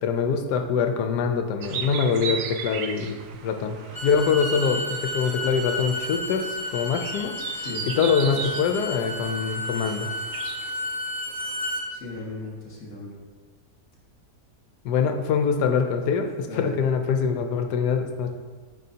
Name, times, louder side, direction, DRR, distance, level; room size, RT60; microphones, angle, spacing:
voice 1, 0.0-3.2 3.4-3.8 4.0-7.3 7.8-10.1 14.8-18.3, left 6 dB, 80° left, 6 dB, 1.2 m, -24 dB
sound 1, 1.6-10.7, right 7 dB, 70° right, 0.8 m, -37 dB
Bowed string instrument, 3.8-11.8, left 1 dB, 30° left, 1.5 m, -32 dB
voice 2, 7.5-7.9 8.3-8.6 11.9-13.1 16.4-16.8, left 2 dB, 50° left, -3 dB, 1.9 m, -37 dB
9.3 x 5.1 x 2.8 m, 1.5 s
omnidirectional pair, 1.8 m